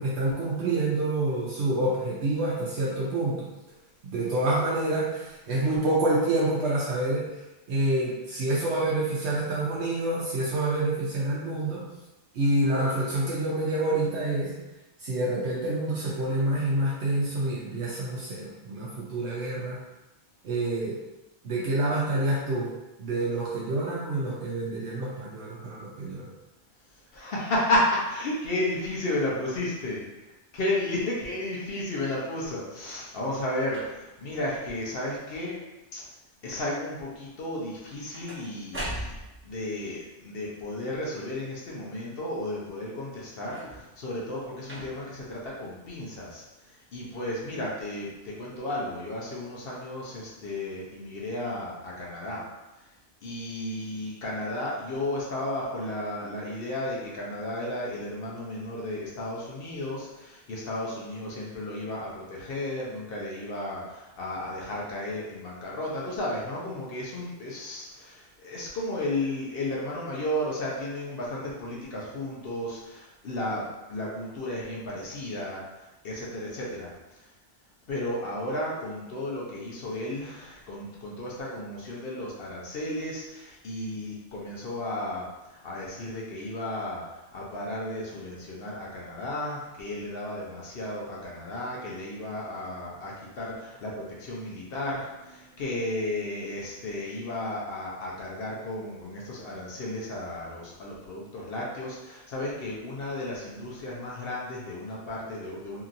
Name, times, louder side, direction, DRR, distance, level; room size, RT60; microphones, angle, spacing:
voice 1, 0.0-3.5 4.0-7.3 7.7-11.9 12.3-14.6 15.0-19.8 20.4-21.0 21.4-22.7 23.0-26.3, right 2 dB, 70° right, -6 dB, 0.9 m, -27 dB
voice 2, 26.9-35.5 35.9-36.1 36.4-39.1 39.4-52.5 53.2-77.3 77.9-105.8, left 1 dB, 60° left, -4 dB, 0.9 m, -33 dB
sound 1, 32.7-33.1 33.7-34.2 34.8-35.2 35.5-36.0 37.7-39.6 43.4-44.0 44.6-45.2 46.0-46.1, right 1 dB, 15° right, 0.6 m, -40 dB
2.9 x 2.7 x 2.5 m, 1.0 s
omnidirectional pair, 1.2 m